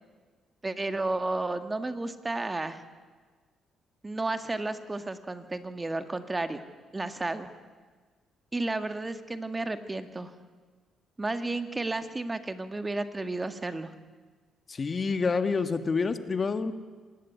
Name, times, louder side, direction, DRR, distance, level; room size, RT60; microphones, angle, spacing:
voice 1, 0.6-2.8 4.0-6.7 6.9-7.5 8.5-10.3 11.2-13.9, right 2 dB, 20° right, 9 dB, 2.0 m, -32 dB
voice 2, 14.7-16.7, left 4 dB, 35° left, 9 dB, 1.8 m, -28 dB
25.5 x 20.0 x 9.6 m, 1.4 s
cardioid pair, 90°, 0 cm